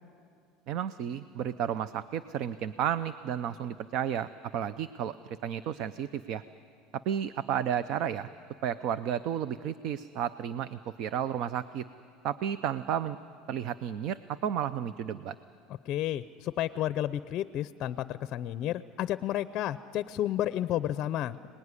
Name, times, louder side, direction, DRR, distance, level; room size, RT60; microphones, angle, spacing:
voice 1, 0.7-6.4 6.9-8.3 8.6-11.9 12.2-13.2 13.5-15.4, right 9 dB, 50° right, 14 dB, 0.6 m, -32 dB
voice 2, 15.9-21.5, left 12 dB, 40° left, 14 dB, 0.6 m, -31 dB
30.0 x 20.0 x 9.8 m, 2.5 s
cardioid pair, 155°, 0 cm